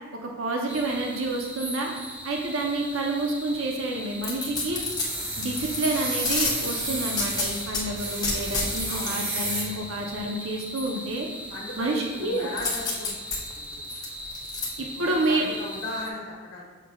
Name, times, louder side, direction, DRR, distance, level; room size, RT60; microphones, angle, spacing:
voice 1, 0.2-1.9 2.2-4.8 5.4-11.3 11.8-12.5 14.8-15.5, right 2 dB, 80° right, 0 dB, 0.7 m, -29 dB
sound 1, 0.7-16.1, equal, 5° right, 0.5 m, -39 dB
sound 2, 4.2-5.8 6.2-7.8 8.2-9.1 12.6-14.7 15.1-15.2, left 3 dB, 20° left, 1.1 m, -29 dB
sound 3, 4.5-10.2, right 1 dB, 25° right, 1.3 m, -32 dB
voice 2, 8.9-9.2 9.5-9.6 11.5-13.1 13.7-13.8 14.9-16.6, left 2 dB, 60° left, -3 dB, 1.3 m, -37 dB
6.7 x 6.1 x 2.3 m, 1.4 s
head